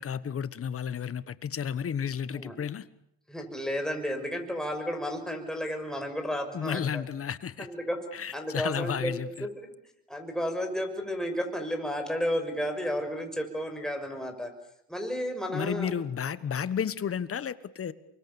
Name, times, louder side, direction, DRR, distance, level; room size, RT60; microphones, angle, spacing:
voice 1, 0.0-2.9 6.5-7.7 8.1-9.5 15.5-17.9, left 8 dB, 35° left, 1.4 m, -32 dB
voice 2, 3.3-7.0 7.6-8.0 8.3-9.5 10.1-14.5 14.9-15.9, equal, ahead, 6.2 m, -32 dB
29.0 x 24.5 x 7.2 m
supercardioid pair, 100°, 41 cm